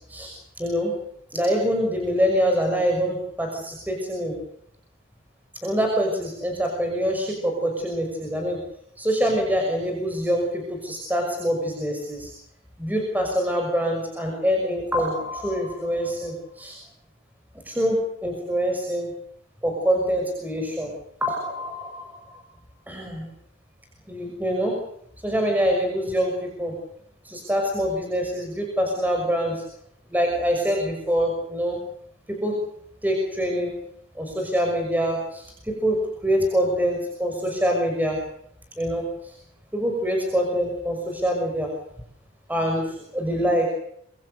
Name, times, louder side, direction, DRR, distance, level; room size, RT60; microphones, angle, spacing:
voice 1, 0.6-0.9 1.3-4.3 5.6-8.6 9.0-12.3 12.8-16.8 17.6-18.0 18.2-19.1 19.6-20.9 21.2-22.4 22.9-23.3 24.1-24.8 25.2-26.7 27.2-29.6 30.1-31.8 32.3-32.6 33.0-33.7 34.1-38.2 38.8-39.3 39.7-41.7 42.5-43.7, equal, 10° right, 2 dB, 5.9 m, -25 dB
26.5 x 23.5 x 6.6 m, 0.71 s
head